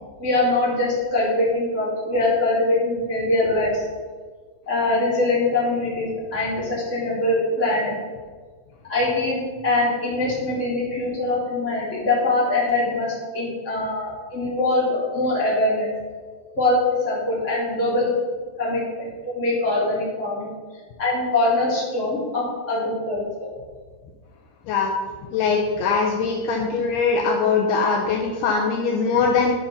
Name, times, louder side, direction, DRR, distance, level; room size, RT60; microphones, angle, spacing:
voice 1, 0.2-3.8 4.7-7.9 8.8-15.9 16.6-16.8 17.0-18.1 18.6-20.5 21.0-23.5, left 2 dB, 15° left, -7 dB, 2.9 m, -23 dB
voice 2, 25.3-29.5, left 5 dB, 85° left, 0 dB, 2.3 m, -21 dB
12.5 x 5.3 x 5.7 m, 1.5 s
omnidirectional pair, 5.8 m